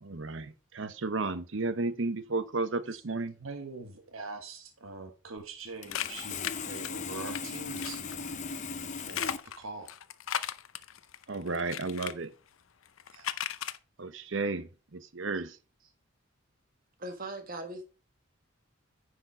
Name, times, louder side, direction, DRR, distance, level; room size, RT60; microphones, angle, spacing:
voice 1, 0.0-3.4 11.3-12.3 14.0-15.6, right 3 dB, 65° right, 0.8 m, -33 dB
voice 2, 3.4-10.0 13.1-13.4, right 3 dB, 90° right, 1.4 m, -44 dB
Sawing, 5.4-5.5 5.8-9.4, left 5 dB, 35° left, 0.6 m, -38 dB
sound 1, 5.9-7.4 7.8-8.1 8.9-12.1 12.8-13.8, left 10 dB, 80° left, 0.6 m, -36 dB
voice 3, 17.0-17.8, right 2 dB, 45° right, 1.7 m, -39 dB
9.9 x 5.0 x 4.9 m
head